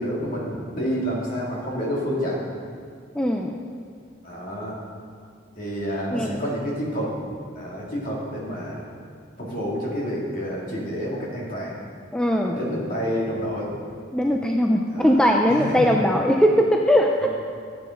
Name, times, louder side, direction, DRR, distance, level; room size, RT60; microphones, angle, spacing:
voice 1, 0.0-2.4 4.2-4.8 5.5-8.8 9.4-11.8 12.5-13.8 14.9-15.2 15.5-16.0 17.2-17.3, equal, 45° left, -4 dB, 2.4 m, -29 dB
voice 2, 3.1-3.6 6.1-6.4 12.1-12.6 14.1-17.3, equal, 5° left, 1 dB, 0.4 m, -20 dB
14.0 x 8.6 x 3.8 m, 2.1 s
head